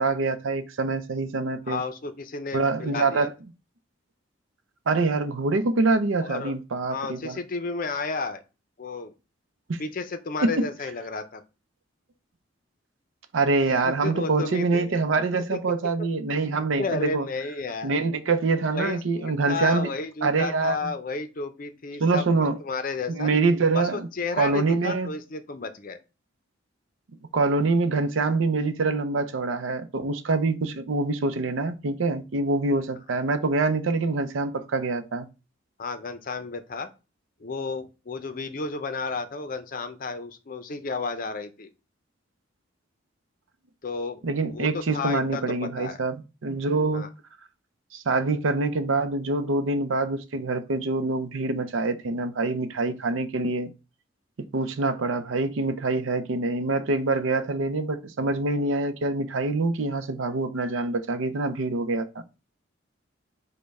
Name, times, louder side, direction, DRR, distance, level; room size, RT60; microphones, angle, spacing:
voice 1, 0.0-1.8 2.5-3.3 4.9-7.4 9.7-9.8 10.4-10.7 13.3-17.3 17.8-19.9 20.2-20.9 22.0-22.6 23.1-24.1 24.4-25.1 27.3-35.3 44.2-47.1 47.9-53.7 54.4-62.1, right 3 dB, 80° right, 0.6 m, -25 dB
voice 2, 1.7-3.3 6.2-6.5 6.9-8.4 8.8-9.1 9.8-11.4 13.7-14.9 15.5-15.6 16.8-17.9 18.7-22.3 22.6-23.3 23.7-26.0 35.8-36.9 37.4-41.7 43.8-46.0 46.9-47.1, left 4 dB, 45° left, 0.5 m, -32 dB
5.2 x 2.2 x 4.6 m
head